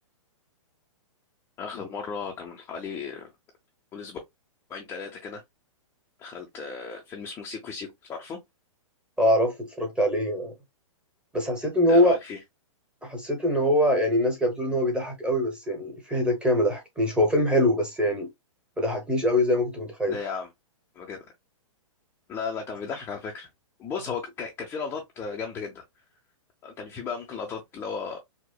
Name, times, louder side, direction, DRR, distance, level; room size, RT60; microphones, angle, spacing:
voice 1, 1.6-3.3 3.9-4.2 4.7-5.4 6.2-8.4 11.9-12.4 20.1-20.5 21.0-21.2 22.3-23.5 23.8-25.8 26.6-28.2, left 5 dB, 15° left, 0.5 m, -35 dB
voice 2, 9.2-10.5 11.3-12.1 13.0-18.3 18.8-20.2, equal, 5° right, 0.9 m, -23 dB
4.7 x 2.1 x 2.2 m
hypercardioid pair, 145°, 17 cm